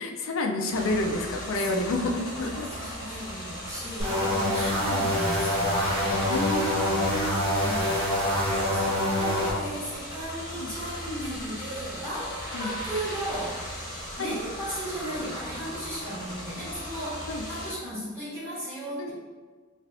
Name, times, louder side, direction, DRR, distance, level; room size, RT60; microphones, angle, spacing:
voice 1, 0.0-2.7 6.3-7.7 10.5-10.7 12.5-12.7 14.2-14.4 17.3-17.5 19.0-19.1, left 2 dB, 65° left, 3 dB, 0.4 m, -30 dB
sound 1, 0.7-17.7, equal, 20° left, 0.9 m, -38 dB
voice 2, 1.5-2.1 2.5-6.3 6.8-8.2 8.5-13.6 14.2-19.1, equal, 15° right, -11 dB, 1.4 m, -36 dB
sound 2, 4.0-9.5, left 1 dB, 30° right, 0.8 m, -25 dB
3.4 x 3.2 x 2.5 m, 1.5 s
head